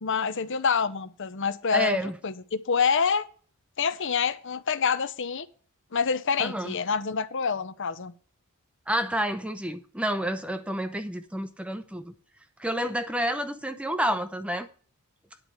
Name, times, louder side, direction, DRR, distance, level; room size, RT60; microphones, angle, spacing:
voice 1, 0.0-3.3 3.8-5.5 5.9-8.1, left 6 dB, 55° left, 0.8 m, -27 dB
voice 2, 1.7-2.2 6.4-6.8 8.9-12.1 12.6-14.7, equal, 5° right, 0.6 m, -29 dB
10.0 x 4.6 x 7.8 m
head